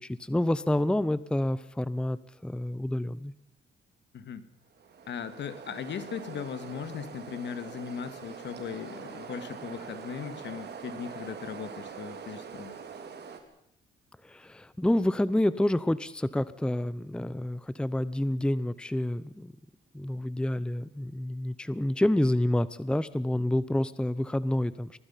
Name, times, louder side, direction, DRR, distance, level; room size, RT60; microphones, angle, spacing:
voice 1, 0.0-3.3 14.2-19.5 19.9-25.0, left 1 dB, 5° left, 16 dB, 0.7 m, -28 dB
voice 2, 4.1-4.5 5.1-12.8, left 7 dB, 65° left, 12 dB, 1.9 m, -38 dB
sound 1, 4.7-13.4, right 6 dB, 55° right, 3.2 m, -43 dB
24.5 x 19.5 x 5.7 m, 0.76 s
cardioid pair, 90°, 20 cm